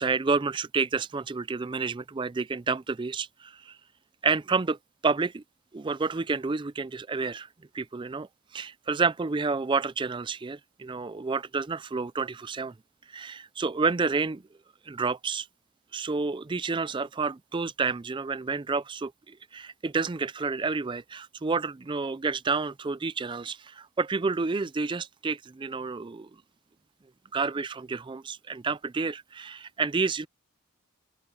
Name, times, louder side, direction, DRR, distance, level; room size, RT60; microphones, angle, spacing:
voice 1, 0.0-3.8 4.2-4.8 5.0-5.4 5.7-7.5 7.7-8.3 8.5-12.7 13.1-14.4 14.9-15.5 15.9-26.3 27.3-30.3, right 4 dB, 20° right, 0.4 m, -29 dB
open air
head